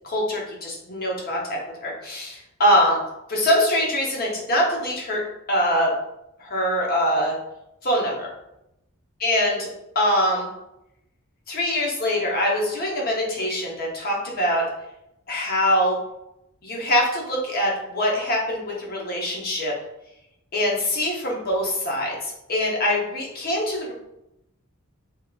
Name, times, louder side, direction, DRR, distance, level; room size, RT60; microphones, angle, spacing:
voice 1, 0.0-3.0 3.3-5.2 5.5-5.9 6.4-7.4 7.8-8.3 9.2-9.7 9.9-10.5 11.5-14.7 15.3-16.0 16.6-19.7 20.5-23.9, equal, 45° left, -2 dB, 0.9 m, -23 dB
3.6 x 2.8 x 2.4 m, 0.85 s
head